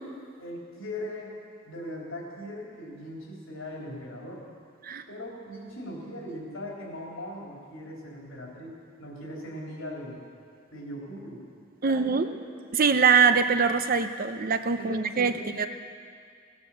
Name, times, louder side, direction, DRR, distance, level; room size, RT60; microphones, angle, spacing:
voice 1, 0.4-1.3 1.6-4.5 5.1-10.2 10.7-11.4 11.8-12.3 14.8-15.5, left 1 dB, 85° left, -2 dB, 3.7 m, -39 dB
voice 2, 11.8-12.3 12.7-15.7, right 5 dB, 45° right, 9 dB, 0.7 m, -23 dB
17.0 x 9.6 x 7.3 m, 2.2 s
head